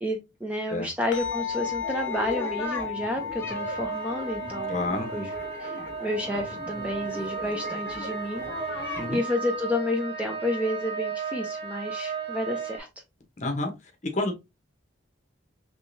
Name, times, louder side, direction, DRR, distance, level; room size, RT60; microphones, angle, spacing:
voice 1, 0.0-4.8 5.1-5.3 5.6-8.8 9.1-12.9, left 1 dB, 5° right, 0.5 m, -30 dB
sound 1, 1.1-9.8, left 8 dB, 75° left, 0.6 m, -37 dB
sound 2, 1.2-9.2, left 1 dB, 10° left, 0.9 m, -39 dB
sound 3, 3.5-12.8, right 5 dB, 65° right, 1.4 m, -35 dB
voice 2, 4.7-5.1 9.0-9.2 13.4-13.7 14.1-14.4, left 2 dB, 40° left, 0.9 m, -29 dB
3.6 x 3.1 x 2.7 m
head